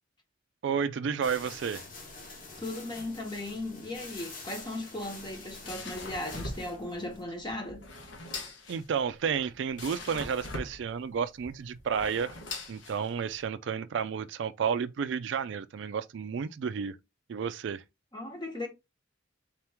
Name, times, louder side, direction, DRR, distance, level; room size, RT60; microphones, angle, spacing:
voice 1, 0.6-1.9 8.7-12.3 12.7-17.0 17.3-17.8, right 6 dB, 65° right, 0.3 m, -31 dB
sound 1, 1.2-7.2, left 3 dB, 45° left, 1.2 m, -46 dB
voice 2, 2.6-7.8 18.1-18.7, left 1 dB, 25° left, 1.0 m, -37 dB
sound 2, 5.2-13.4, left 2 dB, 70° left, 1.0 m, -42 dB
4.0 x 2.9 x 3.5 m
head